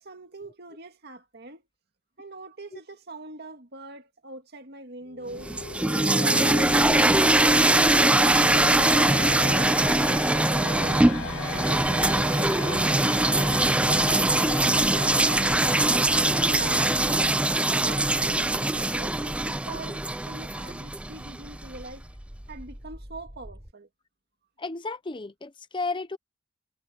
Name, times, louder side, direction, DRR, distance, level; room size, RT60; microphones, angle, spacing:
voice 1, 0.0-1.6 2.2-5.5 6.0-8.2 8.7-11.2 11.7-14.2 14.6-16.2 16.5-17.3 17.7-22.0 22.5-23.9, right 3 dB, 55° right, 2.1 m, -43 dB
sound 1, 5.1-17.9, left 3 dB, 85° left, 2.3 m, -35 dB
sound 2, 5.4-21.4, right 2 dB, 5° right, 0.3 m, -22 dB
sound 3, 6.5-23.7, equal, 25° right, 3.4 m, -44 dB
voice 2, 24.6-26.2, left 3 dB, 25° left, 0.7 m, -33 dB
head